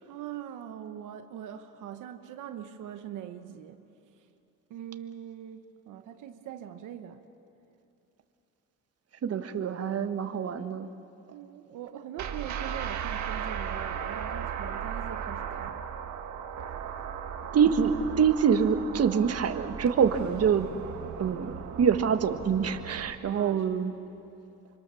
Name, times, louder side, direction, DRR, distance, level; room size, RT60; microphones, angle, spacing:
voice 1, 0.0-3.8 4.1-4.3 4.7-7.3 11.3-15.9 23.3-24.0, right 10 dB, 90° right, 7 dB, 1.1 m, -42 dB
voice 2, 9.2-10.9 17.5-20.7 21.2-23.9, right 7 dB, 55° right, 8 dB, 1.5 m, -25 dB
sound 1, 12.2-23.1, right 8 dB, 70° right, 1.8 m, -36 dB
26.0 x 25.5 x 7.0 m, 2.8 s
cardioid pair, 90°, 30 cm